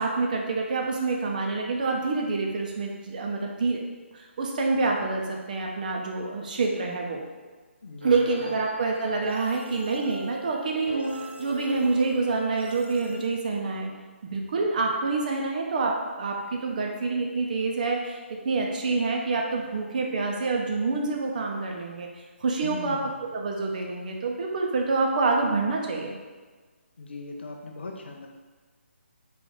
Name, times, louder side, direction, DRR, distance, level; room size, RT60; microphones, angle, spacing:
voice 1, 0.0-3.8 4.4-7.2 8.0-13.9 14.2-22.1 22.4-23.0 23.3-26.1, right 3 dB, 40° right, 0 dB, 0.6 m, -27 dB
voice 2, 7.8-8.6 22.6-23.1 27.0-28.3, left 3 dB, 55° left, 2 dB, 0.6 m, -39 dB
sound 1, 8.0-13.3, right 1 dB, 55° right, 0.9 m, -40 dB
3.8 x 2.5 x 3.8 m, 1.4 s
figure-of-eight pair, 140°, 7 cm